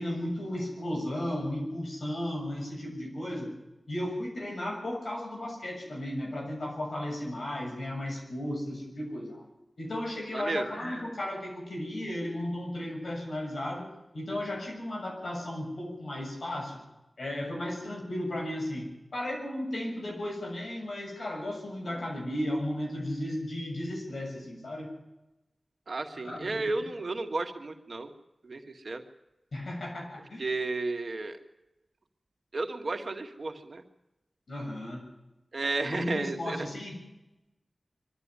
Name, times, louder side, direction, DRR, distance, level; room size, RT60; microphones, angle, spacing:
voice 1, 0.0-3.5 3.9-9.4 9.8-13.9 14.1-16.8 17.2-24.9 26.1-26.6 29.5-30.5 34.5-35.1 35.8-37.0, left 1 dB, 80° left, 1 dB, 7.2 m, -35 dB
voice 2, 10.3-10.7 25.9-28.1 28.4-29.0 30.4-31.4 32.5-33.8 35.5-36.7, right 3 dB, 70° right, 4 dB, 2.0 m, -33 dB
23.0 x 12.5 x 9.8 m, 0.95 s
cardioid pair, 45°, 0 cm